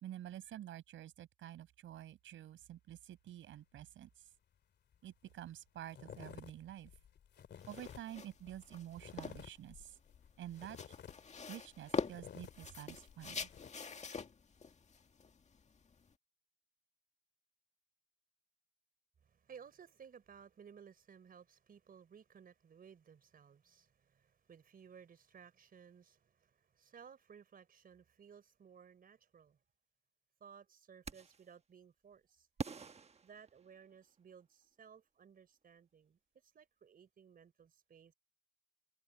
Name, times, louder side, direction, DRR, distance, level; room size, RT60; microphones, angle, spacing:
voice 1, 0.0-4.1 5.0-6.9 7.7-10.0 10.4-10.8 11.5-13.5, right 12 dB, 75° right, 5.6 m, -49 dB
sound 1, 4.9-5.0 5.2-5.5 5.9-13.7, left 8 dB, 60° left, 2.8 m, -54 dB
sound 2, 7.6-16.1, left 5 dB, 35° left, 2.0 m, -45 dB
voice 2, 19.2-29.6 30.4-32.5 33.2-38.1, right 7 dB, 45° right, 4.0 m, -59 dB
sound 3, 31.0-31.5 32.6-34.1, right 5 dB, 30° right, 1.3 m, -46 dB
open air
cardioid pair, 90°, 20 cm